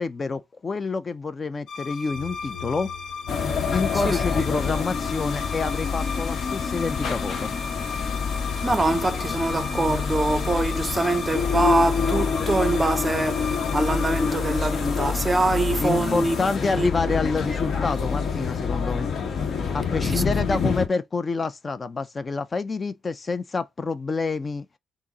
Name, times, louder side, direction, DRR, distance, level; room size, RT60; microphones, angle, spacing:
voice 1, 0.0-2.9 3.7-7.5 15.8-19.1 19.7-24.7, left 4 dB, 35° left, 0.4 m, -28 dB
sound 1, 1.7-15.3, left 5 dB, 90° left, 0.9 m, -36 dB
sound 2, 3.3-20.9, left 5 dB, 55° left, 1.0 m, -27 dB
voice 2, 8.6-16.4 16.7-17.2 20.1-20.6, right 2 dB, 20° right, 0.5 m, -24 dB
6.0 x 2.0 x 3.9 m
cardioid pair, 90°, 0 cm